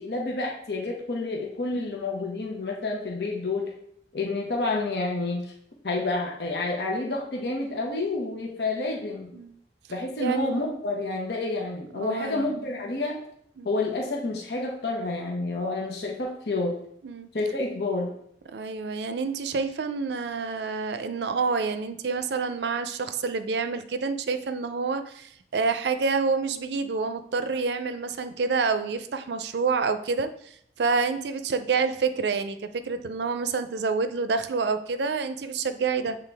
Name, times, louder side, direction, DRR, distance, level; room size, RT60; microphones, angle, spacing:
voice 1, 0.0-3.7 4.1-5.4 5.8-9.3 9.9-13.2 13.6-16.7 17.3-18.1, left 2 dB, 70° left, -1 dB, 1.0 m, -29 dB
voice 2, 10.2-10.6 12.0-12.9 13.6-13.7 17.0-17.3 18.5-30.3 30.8-36.2, right 4 dB, 75° right, 10 dB, 0.5 m, -28 dB
7.6 x 3.7 x 3.4 m, 0.69 s
head